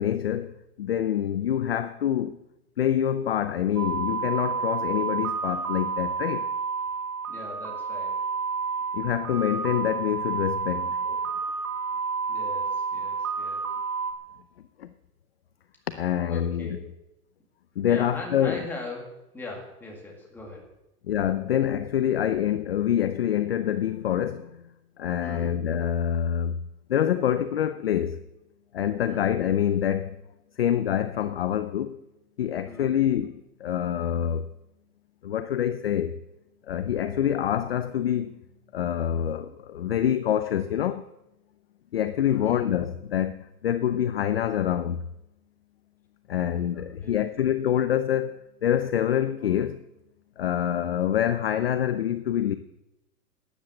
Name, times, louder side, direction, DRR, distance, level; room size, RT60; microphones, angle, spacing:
voice 1, 0.0-2.4 2.8-6.5 8.9-11.3 14.8-14.9 15.9-16.8 17.8-18.6 21.1-24.6 25.0-26.6 26.9-28.2 28.7-30.2 30.6-32.0 32.4-34.5 35.2-36.2 36.7-38.4 38.7-41.0 41.9-45.0 46.3-49.8 50.4-52.6, left 10 dB, 40° left, 0.5 m, -26 dB
sound 1, 3.8-14.1, right 5 dB, 70° right, 2.1 m, -30 dB
voice 2, 7.3-8.3 12.3-13.7 16.3-16.8 17.8-20.7 25.2-25.5 29.1-29.4 32.6-32.9 42.3-42.6 46.7-47.3, left 2 dB, 5° left, 1.9 m, -40 dB
12.5 x 10.5 x 7.6 m
hypercardioid pair, 170°, 46 cm